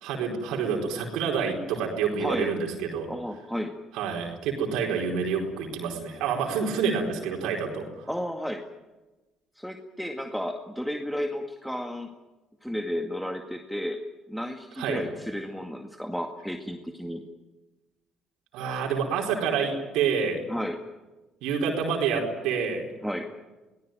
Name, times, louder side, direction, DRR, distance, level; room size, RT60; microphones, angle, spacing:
voice 1, 0.0-3.1 3.9-7.8 14.8-15.0 18.5-20.4 21.4-22.8, right 6 dB, 80° right, 0 dB, 4.6 m, -28 dB
voice 2, 2.2-2.6 3.1-3.8 8.1-8.6 9.6-12.1 12.6-14.0 14.3-17.2 20.5-20.8 23.0-23.3, equal, ahead, 4 dB, 2.0 m, -32 dB
23.5 x 18.0 x 9.3 m, 1.1 s
supercardioid pair, 65°, 0 cm